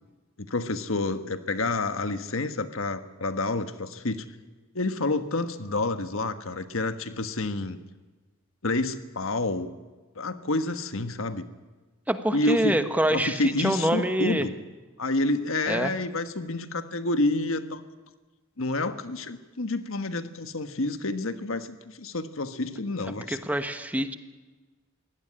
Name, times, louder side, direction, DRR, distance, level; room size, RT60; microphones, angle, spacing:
voice 1, 0.4-4.3 4.7-7.8 8.6-9.7 10.1-11.5 12.3-12.8 13.1-14.5 15.0-17.8 18.6-23.4, left 2 dB, 80° left, 9 dB, 1.4 m, -29 dB
voice 2, 12.1-14.5 15.7-15.9 23.3-24.1, right 1 dB, 5° right, 8 dB, 1.1 m, -26 dB
22.5 x 17.0 x 9.9 m, 1.3 s
head